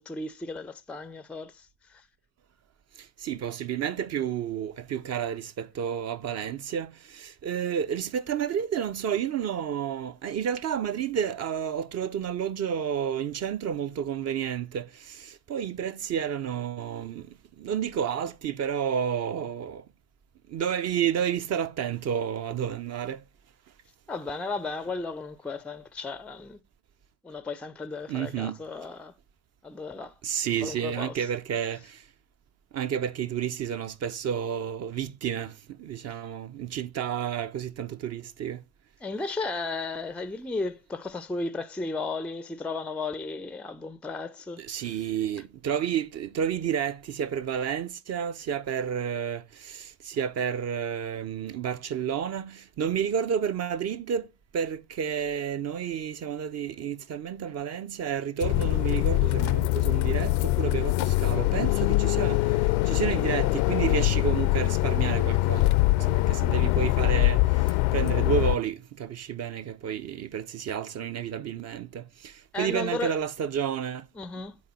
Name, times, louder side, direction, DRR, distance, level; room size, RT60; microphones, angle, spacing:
voice 1, 0.0-1.6 1.9-2.0 24.1-26.6 27.2-29.1 29.6-30.1 30.4-31.1 39.0-44.6 72.5-73.1 74.2-74.6, left 3 dB, 5° left, 0.4 m, -34 dB
voice 2, 3.2-17.3 17.6-19.8 20.5-23.2 28.1-28.6 30.2-31.8 32.7-35.5 35.8-38.6 44.6-54.3 54.5-62.4 62.9-65.7 66.1-67.4 67.9-72.0 72.6-74.0, right 8 dB, 40° right, 0.7 m, -30 dB
sound 1, 58.4-68.5, left 18 dB, 60° left, 0.5 m, -23 dB
9.5 x 4.0 x 4.1 m
figure-of-eight pair, 55°, 39 cm